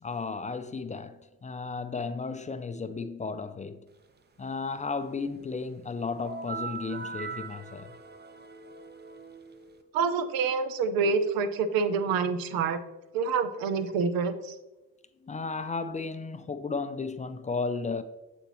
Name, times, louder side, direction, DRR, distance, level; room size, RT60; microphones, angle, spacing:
voice 1, 0.0-3.8 4.4-7.9 15.2-18.0, left 4 dB, 20° left, 0.4 m, -34 dB
sound 1, 6.2-9.8, right 4 dB, 30° right, 0.8 m, -40 dB
voice 2, 9.9-12.8 13.1-14.5, right 5 dB, 75° right, 0.6 m, -27 dB
7.9 x 4.2 x 3.0 m
hypercardioid pair, 50°, 35 cm